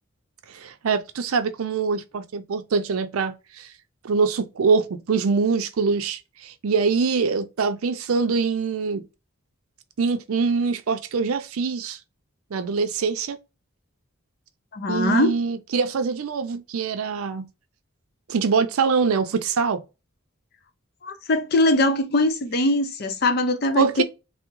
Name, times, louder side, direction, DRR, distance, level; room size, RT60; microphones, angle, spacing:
voice 1, 0.5-3.7 4.0-9.0 10.0-12.0 12.5-13.4 14.9-17.5 18.3-19.8 23.8-24.0, right 5 dB, 90° right, 0.5 m, -24 dB
voice 2, 14.7-15.3 21.0-24.0, left 1 dB, 45° left, 0.5 m, -21 dB
3.5 x 2.0 x 2.9 m
head